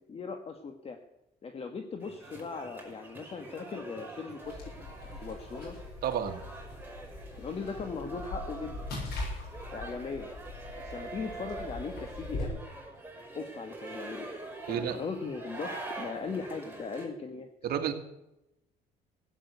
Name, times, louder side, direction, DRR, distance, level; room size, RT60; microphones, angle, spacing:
voice 1, 0.1-1.0 1.4-4.6 5.1-5.8 7.4-8.8 9.7-10.3 10.8-12.6 13.3-14.3 14.6-17.5, left 5 dB, 35° left, 6 dB, 1.4 m, -39 dB
sound 1, 2.0-17.1, right 2 dB, 10° right, 5.4 m, -45 dB
sound 2, 4.4-12.5, left 2 dB, 70° left, 7.8 m, -41 dB
voice 2, 6.0-6.4 14.7-15.0 17.6-17.9, right 9 dB, 65° right, 6 dB, 2.0 m, -30 dB
16.0 x 8.9 x 8.2 m, 0.92 s
cardioid pair, 110°, 17 cm